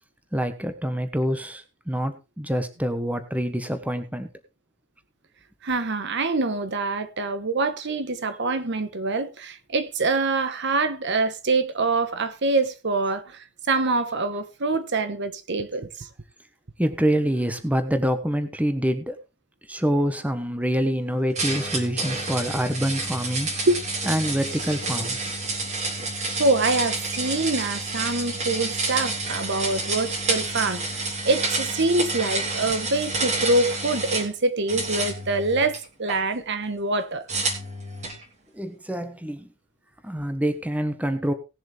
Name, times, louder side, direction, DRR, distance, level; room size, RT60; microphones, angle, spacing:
voice 1, 0.3-4.3 16.8-19.2 19.7-23.5 24.0-25.4 38.5-39.5 40.0-41.3, equal, 5° right, 1.1 m, -26 dB
voice 2, 5.6-16.1 23.7-23.8 26.4-37.2, right 3 dB, 55° right, 1.1 m, -25 dB
sound 1, 21.3-34.3 34.7-36.2 37.3-38.2, right 3 dB, 30° right, 3.1 m, -29 dB
18.5 x 7.4 x 3.4 m
head